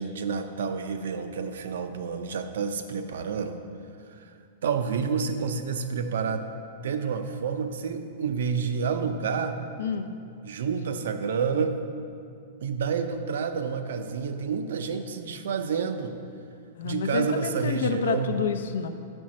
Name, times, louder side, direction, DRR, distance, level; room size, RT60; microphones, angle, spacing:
voice 1, 0.0-3.6 4.1-4.3 4.6-6.5 6.8-9.6 10.4-11.8 12.6-16.2 16.8-18.3, right 6 dB, 80° right, 7 dB, 0.5 m, -29 dB
voice 2, 16.8-18.9, left 6 dB, 85° left, 8 dB, 0.5 m, -28 dB
6.5 x 4.4 x 6.1 m, 2.4 s
supercardioid pair, 170°, 0 cm